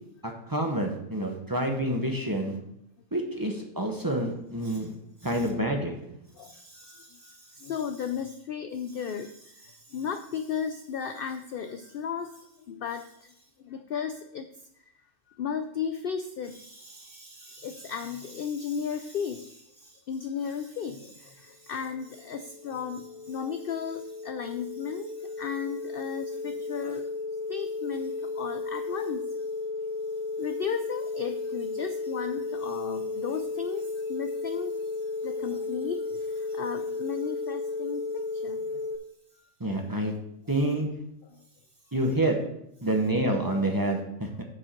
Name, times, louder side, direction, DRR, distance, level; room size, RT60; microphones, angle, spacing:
voice 1, 0.5-2.6 3.1-4.9 5.2-5.9 39.6-40.1 40.5-40.9 41.9-42.4 42.8-44.4, right 1 dB, 15° right, 1 dB, 0.9 m, -27 dB
voice 2, 5.2-5.5 6.3-14.5 14.8-14.9 15.3-27.1 27.5-29.5 30.4-38.9 39.3-39.5 40.7-40.8 41.2-41.9, left 7 dB, 70° left, 8 dB, 0.5 m, -36 dB
sound 1, 22.0-39.0, left 3 dB, 40° left, 0.7 m, -34 dB
7.1 x 5.1 x 5.9 m, 0.78 s
omnidirectional pair, 1.4 m